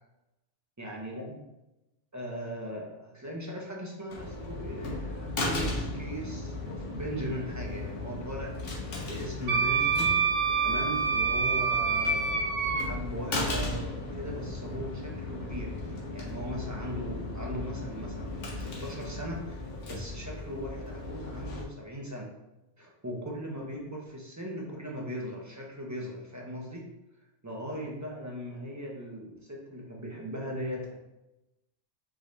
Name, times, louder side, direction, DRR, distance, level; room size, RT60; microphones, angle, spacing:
voice 1, 0.8-1.4 2.1-8.6 9.0-10.2 10.6-22.3 22.8-26.9 27.4-31.0, equal, 20° right, -2 dB, 0.5 m, -39 dB
heavy door open close outside, 4.1-21.6, left 2 dB, 90° left, 1.2 m, -36 dB
Wind instrument woodwind instrument, 9.5-12.8, right 5 dB, 70° right, 0.8 m, -26 dB
4.8 x 2.6 x 3.2 m, 0.94 s
omnidirectional pair, 1.2 m